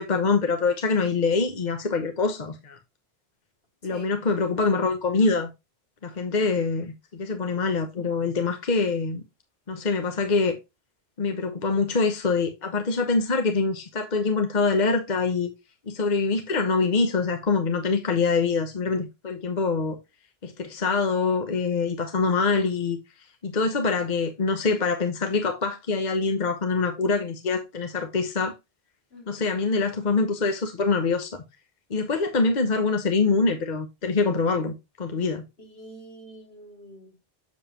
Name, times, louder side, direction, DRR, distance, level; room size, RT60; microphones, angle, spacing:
voice 1, 0.0-2.8 3.8-5.5 6.0-9.2 9.7-10.6 11.2-15.5 15.9-20.0 20.4-23.0 23.4-28.5 29.3-31.4 31.9-35.4, left 4 dB, 50° left, 1.1 m, -24 dB
voice 2, 29.1-29.4 35.6-37.2, right 1 dB, 75° left, 3.4 m, -46 dB
7.3 x 7.1 x 2.9 m
omnidirectional pair, 1.0 m